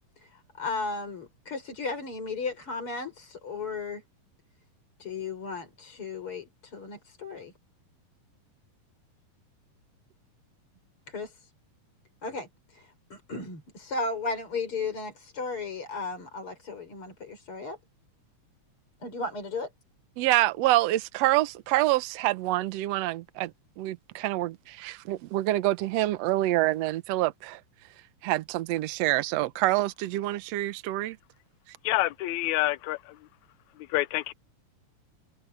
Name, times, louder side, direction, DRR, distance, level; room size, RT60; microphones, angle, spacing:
voice 1, 0.2-4.0 5.0-7.5 11.1-11.5 12.2-17.8 19.0-19.7, left 4 dB, 40° left, 6.1 m, -35 dB
voice 2, 20.2-23.5 23.8-27.6 28.2-31.2, right 16 dB, 75° right, 1.6 m, -26 dB
voice 3, 31.8-33.2 33.9-34.3, left 17 dB, 80° left, 1.7 m, -27 dB
omnidirectional pair, 3.9 m